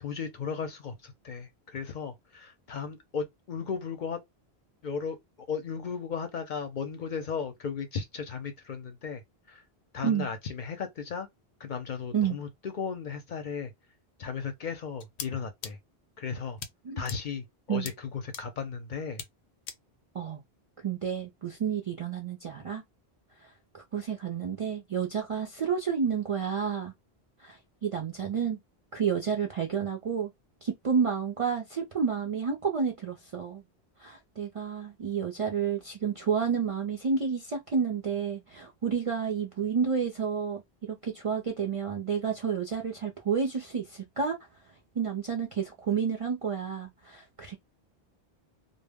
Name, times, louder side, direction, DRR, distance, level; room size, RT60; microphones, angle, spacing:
voice 1, 0.0-4.2 4.8-5.2 5.5-9.2 9.5-9.6 9.9-11.3 11.6-13.7 14.2-15.8 16.2-16.6 17.0-19.2, left 6 dB, 55° left, 0.6 m, -35 dB
sound 1, 15.0-15.3 15.6-15.7 16.6-16.7 17.1-17.2 17.9-18.0 18.3-18.4 19.2-19.3 19.7-19.8, left 7 dB, 90° left, 0.9 m, -38 dB
voice 2, 20.8-22.8 23.7-26.9 27.4-28.6 28.9-30.3 30.6-33.6 34.0-40.6 40.9-44.4 45.0-47.6, right 6 dB, 55° right, 0.3 m, -30 dB
2.0 x 2.0 x 3.4 m
omnidirectional pair, 1.1 m